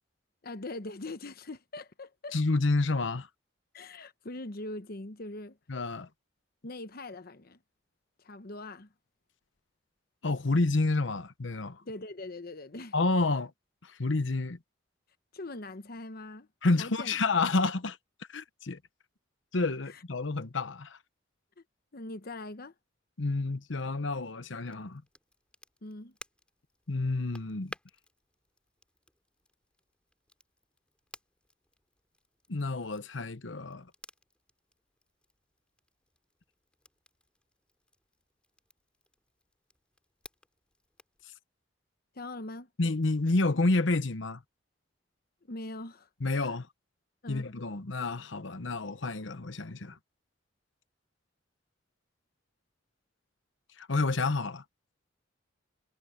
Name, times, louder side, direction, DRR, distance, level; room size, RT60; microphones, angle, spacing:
voice 1, 0.4-2.4 3.7-5.6 6.6-7.6 8.2-8.9 11.8-12.9 15.3-16.5 16.8-17.1 19.9-20.0 21.9-22.7 25.8-26.1 42.1-42.7 45.5-46.5 47.2-47.5, left 2 dB, 50° left, 1.0 m, -42 dB
voice 2, 2.3-3.3 5.7-6.1 10.2-11.8 12.9-13.5 13.8-14.6 16.6-18.0 18.3-18.8 19.5-21.0 23.2-25.0 26.9-27.7 32.5-33.9 42.8-44.4 46.2-46.7 47.3-50.0 53.8-54.6, left 3 dB, 75° left, 1.0 m, -29 dB
Crackle, 24.6-41.2, left 1 dB, 5° left, 2.9 m, -56 dB
head